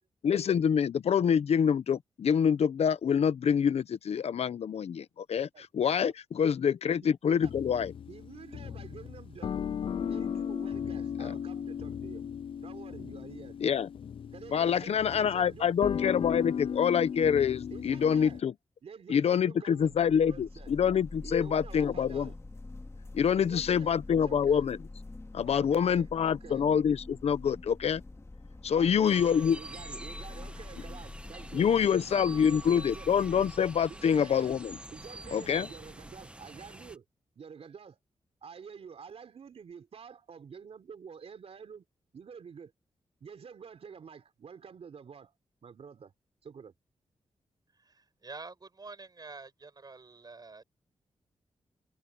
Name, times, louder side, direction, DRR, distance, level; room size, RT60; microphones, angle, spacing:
voice 1, 0.2-5.5 5.7-7.9 11.2-11.3 13.6-13.9 14.5-18.5 19.1-22.3 23.1-24.8 25.3-28.0 28.6-29.6 31.5-34.8 35.3-35.7, left 7 dB, 75° left, 0.9 m, -26 dB
sound 1, 7.4-18.4, left 8 dB, 55° left, 0.3 m, -36 dB
voice 2, 8.1-9.5 10.0-12.2 12.6-13.6 14.3-15.7 17.7-18.4 18.8-20.7 21.2-22.3 23.4-24.7 25.5-26.6 28.7-31.7 32.3-33.1 33.9-34.6 34.9-37.0 37.4-38.0 38.4-41.9 42.1-42.7 43.2-45.3 45.6-46.1 46.4-46.7, right 6 dB, 70° right, 3.7 m, -48 dB
sound 2, 19.8-36.3, left 2 dB, 25° left, 2.3 m, -46 dB
sound 3, 29.0-37.0, right 1 dB, 10° right, 1.5 m, -46 dB
voice 3, 47.8-50.6, right 3 dB, 40° right, 6.9 m, -47 dB
cardioid pair, 80°, 11 cm